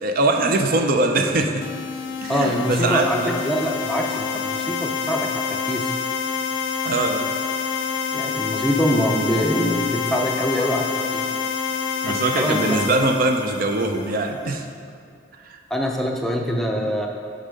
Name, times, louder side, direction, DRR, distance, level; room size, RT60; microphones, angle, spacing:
voice 1, 0.0-1.6 2.2-3.3 6.8-7.3 12.0-14.6 15.5-15.6, right 2 dB, 50° right, 4 dB, 0.5 m, -22 dB
sound 1, 1.6-14.3, left 6 dB, 80° left, 0.4 m, -27 dB
voice 2, 2.3-6.0 8.1-11.3 12.1-13.0 15.7-17.1, equal, ahead, 0 dB, 0.5 m, -24 dB
6.8 x 5.4 x 5.2 m, 2.3 s
head